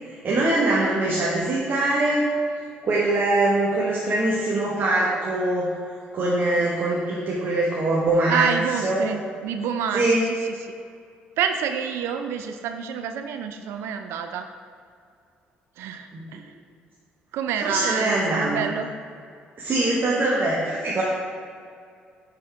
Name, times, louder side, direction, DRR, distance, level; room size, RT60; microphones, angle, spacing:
voice 1, 0.1-2.3 2.8-5.7 6.1-8.5 8.8-9.1 9.9-10.2 16.1-16.4 17.6-18.6 19.6-21.0, right 2 dB, 50° right, -5 dB, 1.3 m, -23 dB
voice 2, 8.3-10.7 11.4-14.5 15.8-16.5 17.3-18.9, right 7 dB, 75° right, 7 dB, 0.4 m, -28 dB
8.7 x 4.2 x 3.4 m, 2.3 s
supercardioid pair, 60°, 4 cm